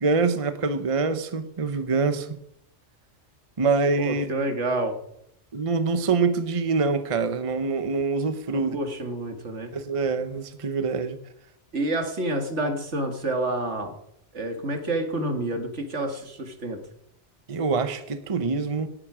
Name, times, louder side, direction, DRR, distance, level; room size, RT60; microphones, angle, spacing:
voice 1, 0.0-2.4 3.6-4.3 5.5-8.8 9.7-11.2 17.5-18.9, right 4 dB, 30° right, 10 dB, 0.9 m, -25 dB
voice 2, 4.0-4.9 8.5-9.7 11.7-13.9 14.3-16.8, right 1 dB, 75° right, 6 dB, 2.2 m, -28 dB
18.0 x 11.0 x 4.9 m, 0.76 s
omnidirectional pair, 1.2 m